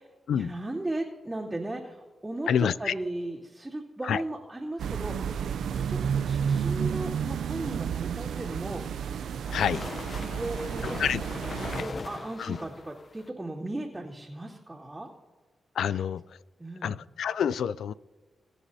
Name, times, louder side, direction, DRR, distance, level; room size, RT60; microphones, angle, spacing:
voice 1, 0.0-5.4 5.8-9.0 10.2-15.1 15.9-16.0 16.6-17.0, right 1 dB, 20° right, -9 dB, 2.8 m, -37 dB
voice 2, 2.5-2.9 4.1-4.2 9.5-9.8 11.0-11.2 12.5-12.6 15.8-16.2 16.8-17.9, left 8 dB, 85° left, 19 dB, 0.3 m, -27 dB
sound 1, 4.8-11.8, right 7 dB, 85° right, 0.4 m, -31 dB
sound 2, 8.2-13.3, left 4 dB, 50° left, 0.7 m, -40 dB
23.5 x 10.0 x 2.8 m, 1.3 s
cardioid pair, 55°, 0 cm